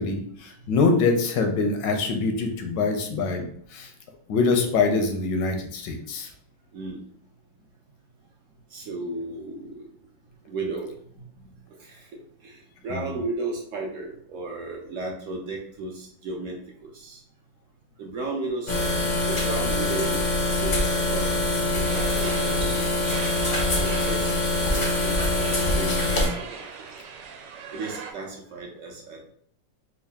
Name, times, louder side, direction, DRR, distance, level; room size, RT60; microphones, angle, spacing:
voice 1, 0.0-3.9 4.3-6.3 12.9-13.1, left 4 dB, 80° left, 4 dB, 1.3 m, -24 dB
voice 2, 8.7-9.9 10.5-11.2 11.8-12.6 12.8-17.2 18.0-18.7 19.3-20.2 20.6-21.3 21.7-22.9 23.8-26.7 27.7-29.3, right 2 dB, 70° right, 0 dB, 0.7 m, -34 dB
sound 1, 18.7-26.3, left 2 dB, 55° left, 0.5 m, -24 dB
sound 2, 21.8-28.1, right 6 dB, 85° right, 1.3 m, -39 dB
3.7 x 2.4 x 3.4 m, 0.65 s
omnidirectional pair, 1.9 m